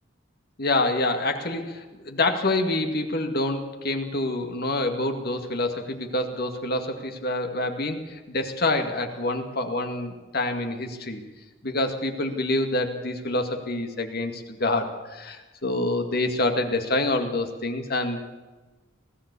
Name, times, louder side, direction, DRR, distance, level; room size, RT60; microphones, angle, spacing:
voice 1, 0.6-11.2 11.6-18.2, left 2 dB, 50° left, 6 dB, 2.2 m, -27 dB
20.5 x 15.0 x 8.4 m, 1.2 s
head